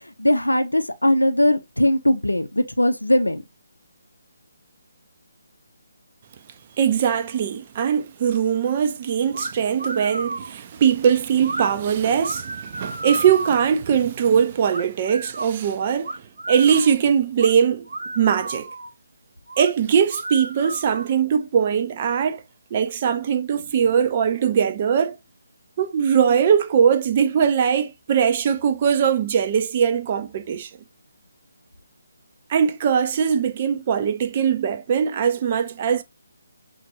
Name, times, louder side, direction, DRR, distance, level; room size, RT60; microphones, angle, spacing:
voice 1, 0.2-3.4, left 1 dB, 80° left, 0.5 m, -20 dB
voice 2, 6.8-17.9 18.2-18.7 19.6-22.4 22.7-25.2 25.8-30.7 32.5-36.0, right 7 dB, 30° right, 0.4 m, -21 dB
sound 1, 9.3-9.5 9.8-10.5 11.4-11.7 12.2-13.7 14.7-15.5 16.0-17.0 17.4-17.5 17.9-18.9 19.5-19.7 20.1-21.2, right 2 dB, 60° right, 0.9 m, -32 dB
5.9 x 2.5 x 2.8 m
figure-of-eight pair, 145°, 0 cm